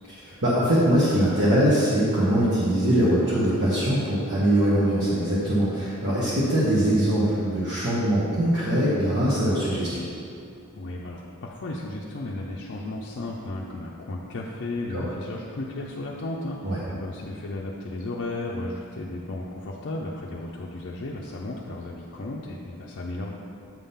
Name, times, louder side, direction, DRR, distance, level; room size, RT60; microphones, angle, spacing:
voice 1, 0.1-10.0 14.9-15.0 16.6-16.8, right 1 dB, 50° right, -9 dB, 1.2 m, -22 dB
voice 2, 10.7-23.3, left 2 dB, 55° left, -3 dB, 0.5 m, -34 dB
7.5 x 3.7 x 5.6 m, 2.5 s
head